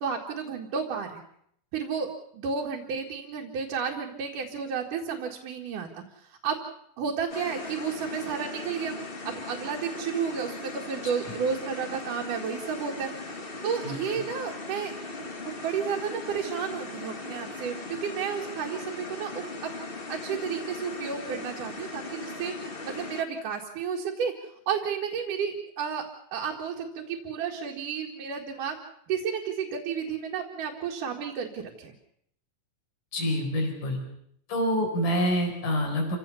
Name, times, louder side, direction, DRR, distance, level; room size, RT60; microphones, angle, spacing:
voice 1, 0.0-1.2 1.7-2.1 2.3-6.6 7.0-9.0 9.2-14.9 15.2-17.7 18.0-19.7 20.1-22.5 22.8-26.0 26.3-28.8 29.1-31.9, right 6 dB, 85° right, -1 dB, 3.4 m, -32 dB
sound 1, 7.3-23.2, left 2 dB, 35° left, 0.8 m, -39 dB
voice 2, 33.1-34.0 34.5-36.2, equal, 85° left, 2 dB, 5.9 m, -26 dB
27.5 x 17.0 x 7.1 m, 0.71 s
omnidirectional pair, 3.6 m